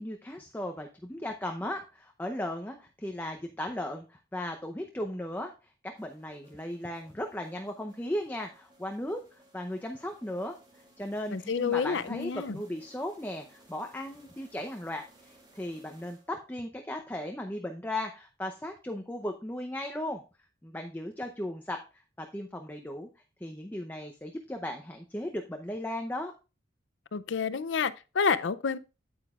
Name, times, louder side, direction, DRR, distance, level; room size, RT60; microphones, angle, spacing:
voice 1, 0.0-5.5 6.0-9.2 9.5-10.6 11.0-20.2 20.6-21.8 22.2-23.1 23.4-26.3, left 1 dB, 10° left, 0.7 m, -36 dB
sound 1, 6.0-16.6, right 1 dB, 25° right, 2.9 m, -60 dB
voice 2, 11.3-12.6 27.1-28.8, left 5 dB, 80° left, 0.5 m, -29 dB
9.1 x 8.9 x 2.4 m
head